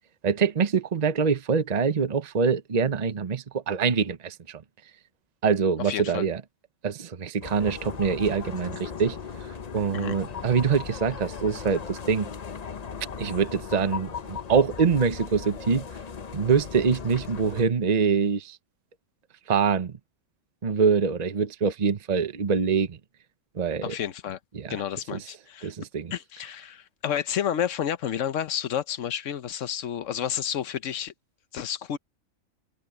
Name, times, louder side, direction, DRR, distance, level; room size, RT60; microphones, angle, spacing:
voice 1, 0.2-4.6 5.4-6.4 6.8-12.3 13.2-15.8 16.3-18.6 19.5-20.0 20.6-23.0 23.5-24.0 24.5-24.8 25.1-25.2 25.6-26.1, right 6 dB, 35° right, 0.9 m, -25 dB
voice 2, 5.8-6.2 9.9-10.2 23.8-24.4 24.7-25.7 26.1-31.1 31.5-32.0, left 9 dB, 70° left, 1.1 m, -30 dB
sound 1, 7.4-17.7, left 6 dB, 40° left, 0.7 m, -38 dB
omnidirectional pair, 1.4 m